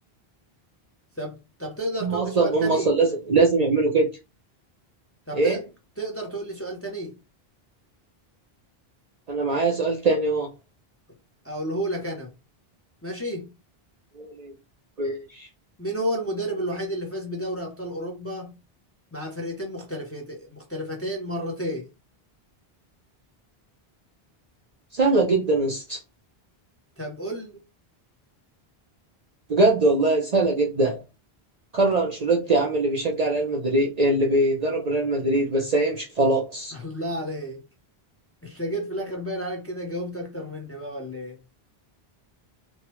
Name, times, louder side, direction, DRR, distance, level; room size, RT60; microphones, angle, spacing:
voice 1, 1.2-2.9 5.3-5.6 6.0-7.1 11.4-12.3 13.0-13.5 15.8-18.5 19.1-21.9 27.0-27.6 36.7-37.6 38.4-41.4, right 1 dB, 15° left, 0.7 m, -31 dB
voice 2, 2.0-4.1 5.3-5.6 9.3-10.5 14.2-14.5 15.0-15.5 24.9-26.0 29.5-31.0 31.7-36.7, right 2 dB, 45° right, 0.6 m, -22 dB
3.1 x 2.2 x 3.0 m
omnidirectional pair, 1.0 m